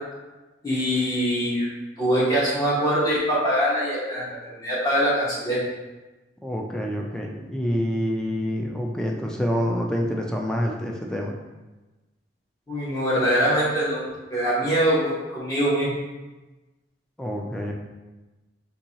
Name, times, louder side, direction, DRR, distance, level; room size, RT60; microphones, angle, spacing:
voice 1, 0.6-1.7 2.0-5.6 12.7-14.0 14.3-16.0, equal, 20° left, -8 dB, 1.1 m, -23 dB
voice 2, 6.4-11.3 17.2-17.7, equal, 5° left, 0 dB, 0.3 m, -27 dB
3.9 x 2.7 x 2.8 m, 1.1 s
head